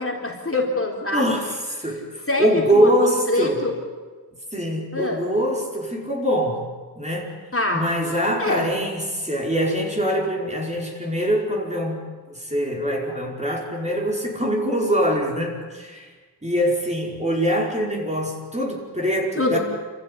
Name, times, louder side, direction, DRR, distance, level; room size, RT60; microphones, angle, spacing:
voice 1, 0.0-1.3 2.3-3.7 4.9-5.3 7.5-7.9 8.4-8.7 19.4-19.6, left 2 dB, 35° left, -1 dB, 4.0 m, -24 dB
voice 2, 1.1-1.5 1.8-3.7 4.5-6.7 7.0-7.3 7.7-12.0 12.3-16.1 16.4-19.6, equal, 15° right, -2 dB, 5.4 m, -23 dB
28.0 x 15.0 x 10.0 m, 1.4 s
wide cardioid pair, 60°, 39 cm